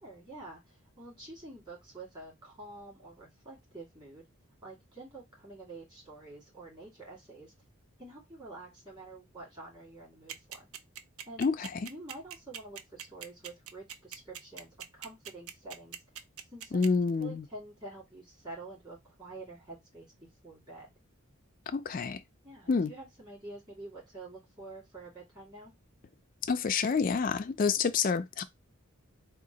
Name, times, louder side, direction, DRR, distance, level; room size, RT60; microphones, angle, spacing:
voice 1, 0.0-4.3 4.6-7.5 8.0-10.7 11.3-11.4 11.8-16.0 16.5-16.8 17.2-20.1 20.4-20.9 22.4-25.7, right 2 dB, 20° right, 2.3 m, -48 dB
sound 1, 10.3-16.9, right 9 dB, 85° right, 0.5 m, -42 dB
voice 2, 11.4-11.9 16.7-17.4 21.7-22.2 22.7-22.9 26.5-28.4, left 5 dB, 40° left, 0.4 m, -28 dB
3.7 x 2.4 x 3.9 m
head